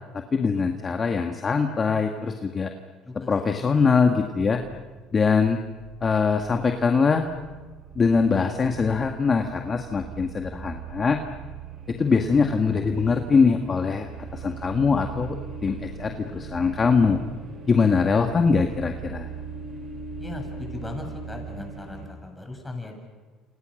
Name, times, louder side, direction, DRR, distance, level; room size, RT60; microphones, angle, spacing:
voice 1, 0.1-2.7 3.1-4.6 5.1-5.6 6.0-7.3 8.0-11.2 11.9-15.4 15.6-17.2 17.7-19.3, left 5 dB, 30° left, 4 dB, 2.0 m, -22 dB
voice 2, 3.1-3.7 18.6-18.8 20.2-23.0, left 2 dB, 10° left, 3 dB, 7.9 m, -38 dB
sound 1, 4.4-22.1, right 6 dB, 45° right, 6.8 m, -40 dB
28.5 x 28.5 x 6.7 m, 1.4 s
supercardioid pair, 90°, 0 cm